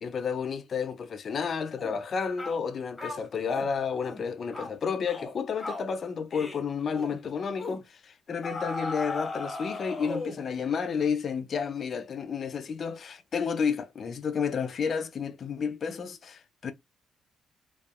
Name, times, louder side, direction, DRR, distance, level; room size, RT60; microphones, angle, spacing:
voice 1, 0.0-16.7, left 6 dB, 50° left, 0.5 m, -31 dB
sound 1, 1.8-2.0 2.4-2.6 3.0-3.7 4.0-4.2 4.5-4.7 5.1-5.3 5.6-5.9 6.3-6.6 6.9-7.2 7.6-7.8 8.4-10.5, left 2 dB, 15° left, 0.9 m, -37 dB
2.6 x 2.3 x 2.4 m
cardioid pair, 90°, 0 cm